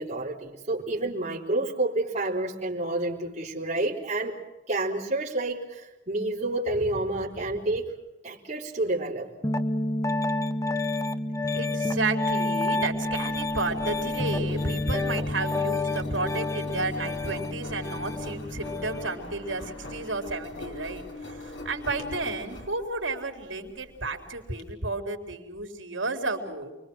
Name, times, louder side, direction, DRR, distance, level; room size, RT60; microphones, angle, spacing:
voice 1, 0.0-4.4 4.7-7.9 8.2-9.3, right 2 dB, 35° right, -4 dB, 4.3 m, -29 dB
Piano, 9.4-19.1, left 2 dB, 15° left, 1.0 m, -29 dB
voice 2, 11.5-26.7, right 3 dB, 85° right, 5 dB, 4.2 m, -32 dB
Engine, 12.9-24.6, left 2 dB, 80° left, 5.4 m, -41 dB
29.0 x 22.0 x 6.4 m, 1.0 s
head